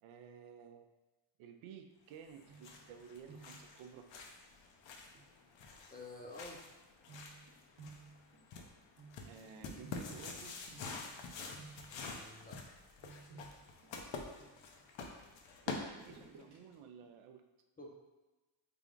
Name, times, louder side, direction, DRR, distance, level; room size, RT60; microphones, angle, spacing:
voice 1, 0.0-0.9 1.4-4.1 9.2-10.6 15.6-17.4, right 7 dB, 75° right, 6 dB, 0.5 m, -54 dB
sound 1, 2.2-16.4, left 4 dB, 65° left, 0.7 m, -48 dB
sound 2, 2.5-3.0 3.2-3.7 5.1-5.3 7.1-11.2 11.5-12.1 13.0-14.8 15.9-16.6 17.0-17.1, right 4 dB, 55° right, 0.9 m, -56 dB
voice 2, 5.9-6.6 11.9-12.6 17.8-17.9, left 2 dB, 20° left, 0 dB, 0.5 m, -50 dB
3.4 x 2.4 x 3.8 m, 1.1 s
cardioid pair, 90°, 50 cm